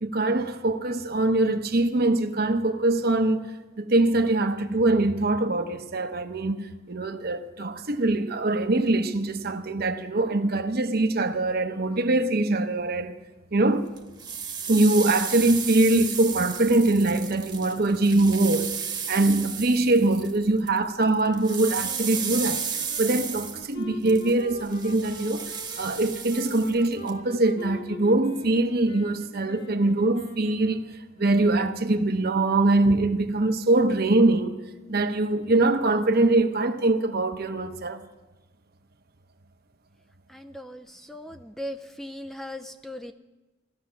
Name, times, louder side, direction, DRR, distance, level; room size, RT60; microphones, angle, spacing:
voice 1, 0.0-3.4 3.8-13.2 13.5-13.9 14.7-18.8 19.1-22.6 23.0-30.9 31.2-34.6 34.9-38.0, right 2 dB, 50° right, 0.9 m, -23 dB
sound 1, 14.0-20.8 21.0-27.1, right 7 dB, 25° right, 1.2 m, -34 dB
sound 2, 21.1-31.1, left 2 dB, 55° left, 1.8 m, -43 dB
voice 2, 40.3-43.1, left 1 dB, ahead, 0.4 m, -38 dB
16.5 x 13.0 x 5.8 m
head